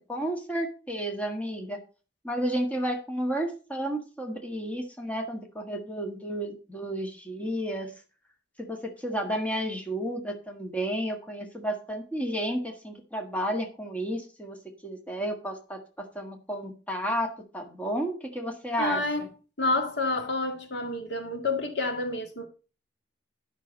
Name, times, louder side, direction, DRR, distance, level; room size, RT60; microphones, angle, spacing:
voice 1, 0.0-1.8 2.2-7.9 8.6-19.3, equal, 10° left, 1.7 m, -32 dB
voice 2, 18.8-19.3 19.6-22.5, left 2 dB, 65° left, 1.9 m, -29 dB
11.5 x 5.9 x 5.3 m
head